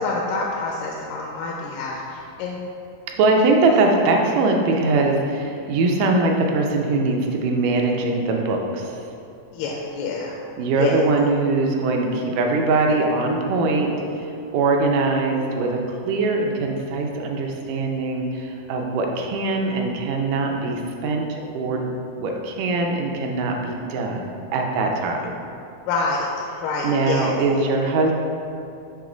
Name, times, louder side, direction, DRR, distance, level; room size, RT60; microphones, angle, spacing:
voice 1, 0.0-2.6 9.5-10.4 10.8-10.9 25.9-26.3 26.6-27.3, left 3 dB, 90° left, -2 dB, 2.2 m, -27 dB
voice 2, 3.2-8.9 10.6-21.9 22.2-24.2 24.5-25.3 26.8-28.1, right 3 dB, 80° right, 1 dB, 2.2 m, -22 dB
7.3 x 3.1 x 4.9 m, 2.6 s
omnidirectional pair, 3.8 m